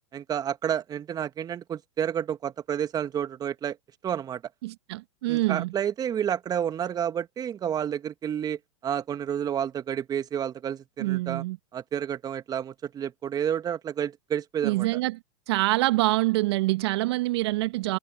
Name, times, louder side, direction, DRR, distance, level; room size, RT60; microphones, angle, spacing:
voice 1, 0.1-3.8 4.0-4.4 5.3-11.4 11.7-15.0, right 9 dB, 25° right, 1.7 m, -30 dB
voice 2, 4.6-5.7 11.0-11.6 14.6-15.2 15.5-18.0, right 19 dB, 60° right, 1.3 m, -25 dB
hypercardioid pair, 105°, 16 cm